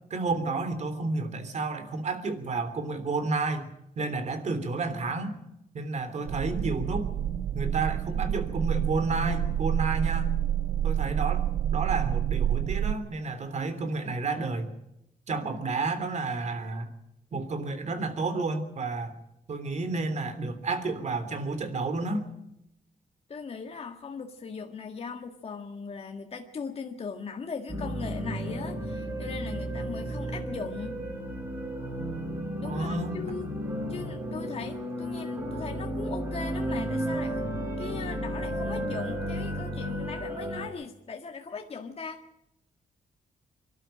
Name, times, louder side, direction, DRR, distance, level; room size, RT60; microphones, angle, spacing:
voice 1, 0.1-3.7 4.0-5.4 5.7-7.1 7.5-10.4 10.8-14.7 15.3-16.9 17.3-19.1 19.5-22.3 32.6-33.4, right 3 dB, 50° right, 11 dB, 3.3 m, -31 dB
sound 1, 6.3-12.9, right 11 dB, 70° right, 1.0 m, -28 dB
voice 2, 23.3-31.0 32.6-33.6 33.9-37.4 37.8-42.2, left 5 dB, 40° left, 3 dB, 1.8 m, -39 dB
sound 2, 27.7-40.7, equal, 15° right, 7.5 m, -33 dB
25.0 x 12.0 x 9.0 m, 0.85 s
cardioid pair, 100°, 15 cm